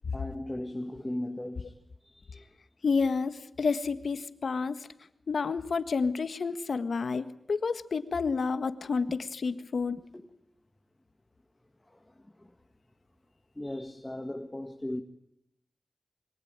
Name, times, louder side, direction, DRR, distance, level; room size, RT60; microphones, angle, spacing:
voice 1, 0.1-1.8 2.0-2.5 10.1-10.3 11.9-12.5 13.5-15.0, left 1 dB, 15° left, 1.8 m, -38 dB
voice 2, 2.8-4.8 5.3-10.0, left 4 dB, 80° left, 1.6 m, -30 dB
27.5 x 23.5 x 8.9 m
wide cardioid pair, 90°, 0 cm